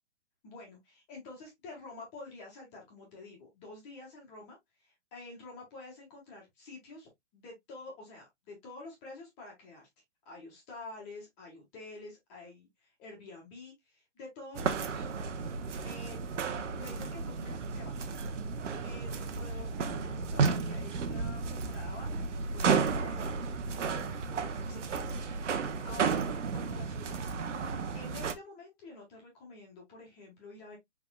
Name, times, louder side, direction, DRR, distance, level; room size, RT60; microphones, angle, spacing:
voice 1, 0.4-9.9 10.2-16.2 16.8-18.2 18.8-23.6 24.0-27.3 27.9-30.8, left 3 dB, 20° left, 1.6 m, -49 dB
sound 1, 14.5-28.3, right 5 dB, 85° right, 1.0 m, -33 dB
5.9 x 3.7 x 2.3 m
hypercardioid pair, 170°, 35 cm